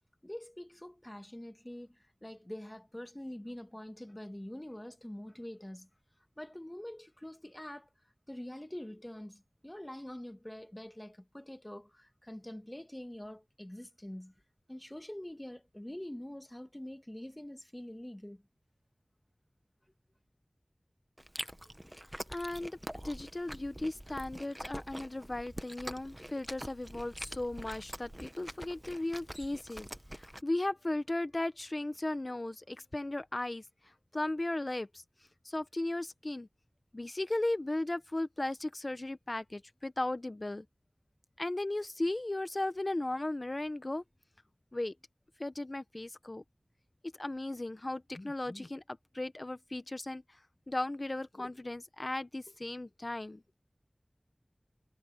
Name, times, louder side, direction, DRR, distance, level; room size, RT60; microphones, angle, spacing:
voice 1, 0.2-5.9 6.4-7.9 8.3-14.3 14.7-18.4, left 1 dB, 20° left, 2.0 m, -45 dB
Chewing mastication, 21.2-30.4, equal, 10° right, 1.2 m, -45 dB
voice 2, 22.3-22.8 23.0-29.9 30.1-33.6 34.1-35.0 35.4-36.5 36.9-40.7 41.4-44.0 44.7-44.9 45.4-46.4 47.2-50.2 50.7-53.4, left 2 dB, 50° left, 1.2 m, -36 dB
wide cardioid pair, 40°, 0 cm